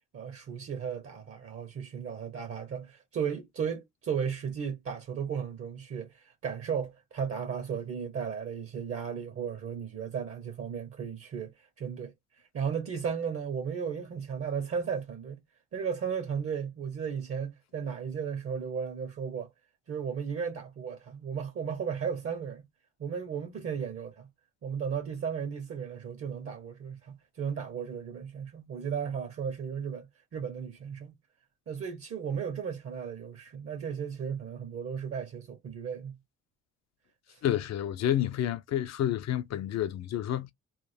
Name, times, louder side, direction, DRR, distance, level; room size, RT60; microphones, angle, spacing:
voice 1, 0.1-12.1 12.5-15.4 15.7-19.5 19.9-22.6 23.0-24.3 24.6-31.1 31.7-36.2 37.3-37.4, right 7 dB, 50° right, 0.7 m, -35 dB
voice 2, 37.4-40.5, left 11 dB, 60° left, 0.5 m, -29 dB
2.3 x 2.0 x 3.2 m
cardioid pair, 90°, 30 cm